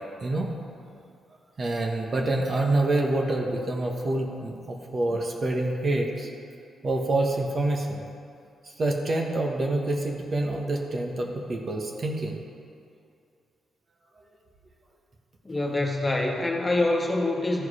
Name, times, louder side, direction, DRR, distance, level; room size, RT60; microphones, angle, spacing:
voice 1, 0.2-0.5 1.6-6.3 6.8-8.0 8.6-12.4, right 2 dB, 45° right, 1 dB, 1.2 m, -27 dB
voice 2, 15.4-17.7, left 2 dB, 25° left, 0 dB, 1.5 m, -25 dB
13.5 x 4.7 x 4.9 m, 2.4 s
cardioid pair, 70°, 0 cm